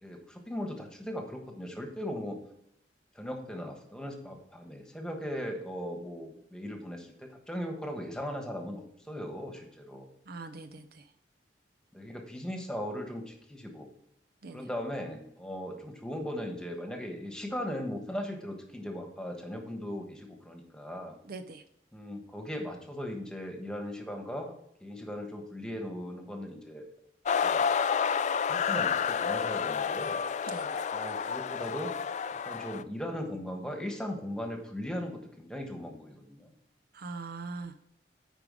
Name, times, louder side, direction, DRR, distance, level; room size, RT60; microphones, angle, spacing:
voice 1, 0.0-2.4 3.1-10.1 11.9-13.9 14.5-21.1 21.9-24.5 24.8-26.9 27.4-27.7 28.5-30.2 30.9-31.9 32.4-36.5, equal, 5° left, 3 dB, 1.3 m, -38 dB
voice 2, 10.3-11.1 14.4-14.7 21.2-21.6 30.5-30.8 36.9-37.8, right 3 dB, 60° right, 8 dB, 0.6 m, -42 dB
sound 1, 27.3-32.8, left 6 dB, 40° left, 0.3 m, -30 dB
9.0 x 4.9 x 4.9 m, 0.74 s
head